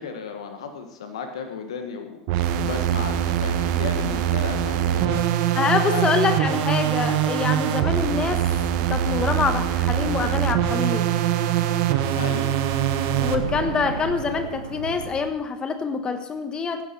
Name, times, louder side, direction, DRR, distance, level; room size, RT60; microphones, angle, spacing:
voice 1, 0.0-5.3 5.9-6.1 12.1-12.5, left 5 dB, 75° left, 6 dB, 1.4 m, -34 dB
sound 1, 2.3-13.4, right 10 dB, 60° right, 1.2 m, -23 dB
voice 2, 5.5-8.5 8.8-11.1 13.2-16.9, left 5 dB, 30° left, 9 dB, 1.2 m, -25 dB
sound 2, 6.4-10.6 10.9-11.1 11.5-15.3, right 6 dB, 85° right, 1.0 m, -36 dB
15.5 x 10.5 x 4.5 m, 0.84 s
hypercardioid pair, 85°, 3 cm